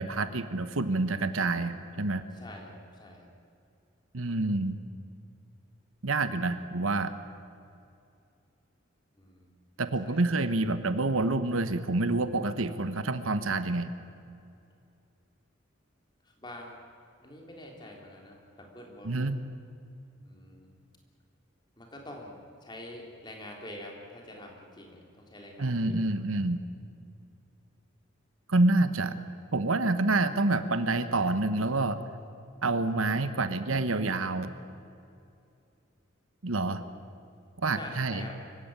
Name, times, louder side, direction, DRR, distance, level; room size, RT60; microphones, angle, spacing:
voice 1, 0.0-2.2 4.1-4.8 6.0-7.1 9.8-13.9 19.0-19.4 25.6-26.6 28.5-29.2 29.5-32.0 32.6-34.5 36.4-36.8 37.6-38.2, right 2 dB, 90° right, 11 dB, 1.2 m, -27 dB
voice 2, 2.3-3.3 9.1-9.5 10.0-10.5 16.2-16.8 17.2-19.4 20.2-20.7 21.8-26.0 36.7-37.0 37.7-38.4, left 1 dB, 20° left, 1 dB, 3.4 m, -46 dB
25.0 x 15.5 x 9.0 m, 2.6 s
head